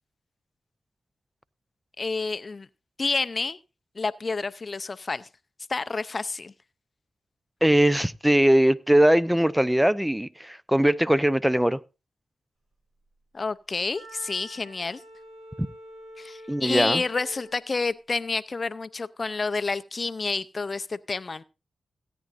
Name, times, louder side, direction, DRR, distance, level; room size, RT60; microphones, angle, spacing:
voice 1, 2.0-2.7 3.0-3.6 4.0-5.3 5.7-6.5 13.3-15.0 16.2-21.4, left 3 dB, 50° left, 0.6 m, -29 dB
voice 2, 7.6-11.8 15.6-15.7 16.5-17.0, right 1 dB, 5° right, 0.6 m, -21 dB
Wind instrument woodwind instrument, 13.9-17.6, equal, 75° right, 7.5 m, -46 dB
17.0 x 9.4 x 2.5 m
supercardioid pair, 40°, 0 cm